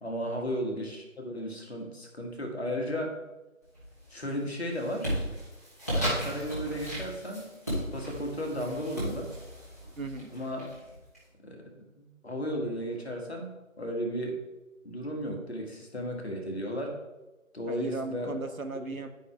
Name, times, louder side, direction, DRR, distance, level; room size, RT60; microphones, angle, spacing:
voice 1, 0.0-3.1 4.1-5.1 5.9-7.5 7.9-9.3 10.3-10.6 11.4-11.7 11.9-14.4 14.8-17.0 17.5-18.3, equal, 50° left, 1 dB, 1.7 m, -34 dB
sound 1, 3.7-4.2 4.5-11.2, equal, 10° left, 1.2 m, -35 dB
voice 2, 10.0-10.3 17.7-19.1, right 3 dB, 90° right, 6 dB, 1.0 m, -36 dB
10.5 x 4.8 x 3.5 m, 1.1 s
figure-of-eight pair, 165°, 41 cm